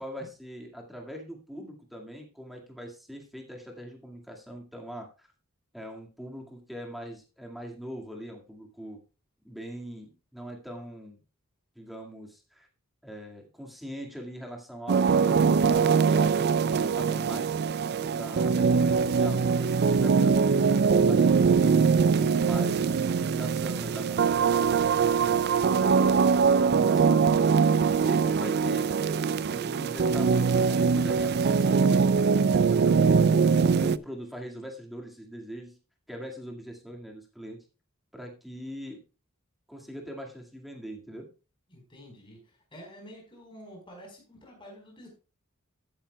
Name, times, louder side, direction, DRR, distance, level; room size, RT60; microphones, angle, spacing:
voice 1, 0.0-5.3 5.7-9.0 9.4-11.2 11.8-12.7 13.0-17.6 18.1-24.6 25.2-27.6 27.9-33.2 33.8-35.8 36.1-37.6 38.1-39.0 39.7-41.3, equal, ahead, 1 dB, 2.0 m, -42 dB
sound 1, 14.9-34.0, right 5 dB, 50° right, 0.4 m, -22 dB
voice 2, 41.7-45.1, equal, 25° left, 0 dB, 4.5 m, -49 dB
14.5 x 8.8 x 2.3 m, 0.32 s
head